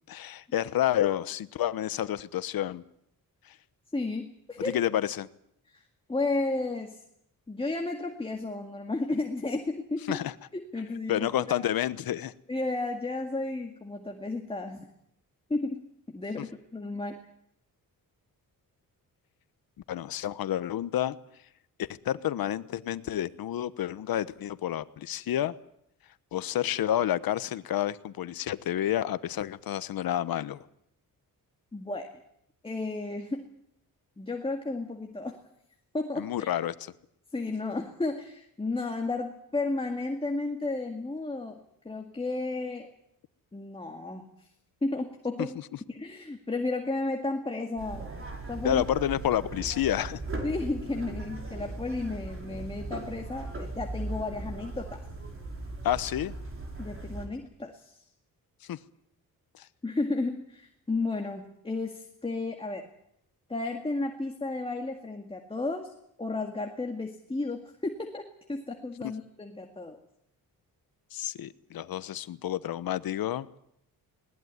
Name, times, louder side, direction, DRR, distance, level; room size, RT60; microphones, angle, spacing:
voice 1, 0.1-2.8 4.6-5.3 10.1-10.3 11.1-12.3 19.9-21.2 21.8-25.5 26.3-30.6 36.2-36.9 45.4-45.5 48.6-50.2 55.8-56.3 58.7-58.8 59.6-59.7 71.1-73.5, left 11 dB, 75° left, 15 dB, 1.1 m, -29 dB
voice 2, 3.9-4.7 5.7-5.8 6.1-7.0 7.5-10.2 10.5-11.6 12.5-14.9 15.5-17.2 31.7-32.1 32.6-33.5 34.2-35.4 35.9-36.6 37.3-42.9 43.5-44.3 44.8-45.6 45.9-48.1 48.5-48.8 50.4-55.0 56.8-58.1 59.8-62.9 63.5-65.9 66.2-68.2 68.5-70.0, left 2 dB, 15° left, 3 dB, 2.0 m, -33 dB
sound 1, 47.8-57.3, right 2 dB, 35° right, 5.0 m, -38 dB
20.5 x 19.0 x 9.6 m, 0.75 s
cardioid pair, 130°, 36 cm